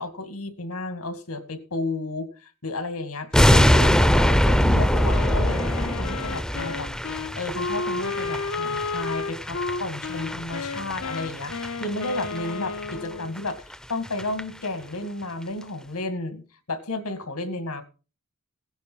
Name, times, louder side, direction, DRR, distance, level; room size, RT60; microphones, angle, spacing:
voice 1, 0.0-6.9 7.4-13.6 13.9-16.4 16.7-17.8, left 2 dB, 80° left, 10 dB, 2.1 m, -32 dB
sound 1, 3.3-12.5 12.8-13.0 13.4-13.5 13.7-13.8 14.1-14.4 14.7-14.8, equal, 5° left, 0.6 m, -23 dB
Wind instrument woodwind instrument, 4.9-13.3, left 4 dB, 65° left, 0.7 m, -32 dB
16.5 x 10.5 x 4.6 m, 0.35 s
head